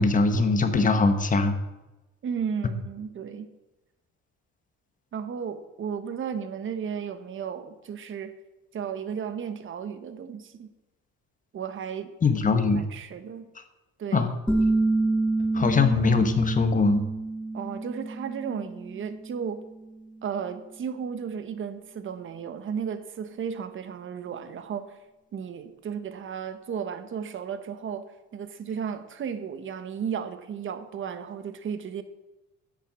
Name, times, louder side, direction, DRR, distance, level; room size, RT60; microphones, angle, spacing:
voice 1, 0.0-1.5 12.2-12.8 14.1-14.4 15.5-17.0, left 4 dB, 25° left, 8 dB, 1.3 m, -22 dB
voice 2, 2.2-3.5 5.1-8.3 8.7-10.7 11.5-12.1 12.7-13.5 14.0-14.3 17.5-19.7 20.2-24.9 25.3-32.0, right 7 dB, 45° right, 10 dB, 1.2 m, -34 dB
sound 1, 14.5-19.9, right 2 dB, 5° left, 1.4 m, -28 dB
11.0 x 7.9 x 7.6 m, 1.0 s
cardioid pair, 145°, 29 cm